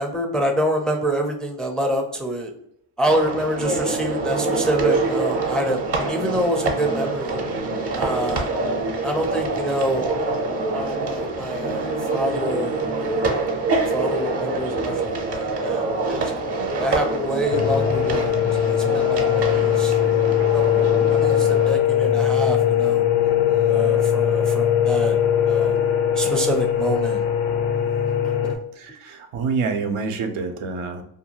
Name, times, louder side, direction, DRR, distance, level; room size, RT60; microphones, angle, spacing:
voice 1, 0.0-2.5 3.0-7.4 7.9-8.5 9.0-10.1 10.7-13.3 13.7-16.3 16.8-19.9 20.5-23.0 23.7-25.2 25.5-25.8 26.1-27.2 28.4-28.5, right 1 dB, ahead, 2 dB, 0.4 m, -27 dB
sound 1, 3.0-21.7, right 3 dB, 55° right, 0.8 m, -25 dB
sound 2, 17.5-28.6, left 10 dB, 65° left, 0.6 m, -20 dB
voice 2, 28.8-31.0, right 4 dB, 85° right, 5 dB, 0.6 m, -27 dB
2.6 x 2.3 x 2.8 m, 0.72 s
cardioid pair, 80°, 49 cm